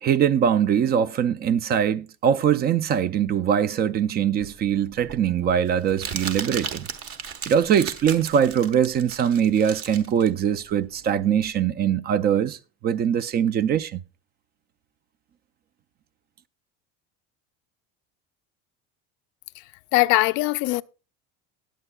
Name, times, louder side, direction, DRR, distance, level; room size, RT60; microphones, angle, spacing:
voice 1, 0.0-6.9 7.5-14.0, right 8 dB, 35° right, 0.4 m, -22 dB
Crumpling crinkling, 4.4-11.5, right 7 dB, 50° right, 1.3 m, -36 dB
voice 2, 19.9-20.8, left 22 dB, 70° left, 0.4 m, -20 dB
19.5 x 8.0 x 2.3 m
cardioid pair, 135°, 30 cm